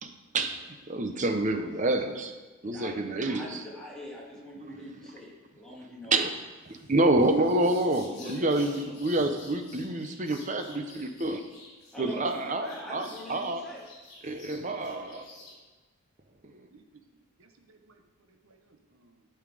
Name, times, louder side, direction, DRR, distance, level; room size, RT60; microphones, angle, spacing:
voice 1, 0.0-2.3 2.6-3.6 4.6-5.1 6.1-6.3 6.7-11.4 12.0-13.6 14.2-15.3 16.4-16.7, right 2 dB, 35° right, 6 dB, 0.8 m, -28 dB
voice 2, 2.6-6.2 8.2-9.0 11.9-13.8, left 1 dB, 5° left, -5 dB, 2.1 m, -43 dB
sound 1, 6.7-15.6, left 2 dB, 50° left, 3.0 m, -51 dB
voice 3, 16.5-19.3, right 3 dB, 70° right, 6 dB, 1.0 m, -61 dB
12.0 x 5.7 x 4.8 m, 1.2 s
head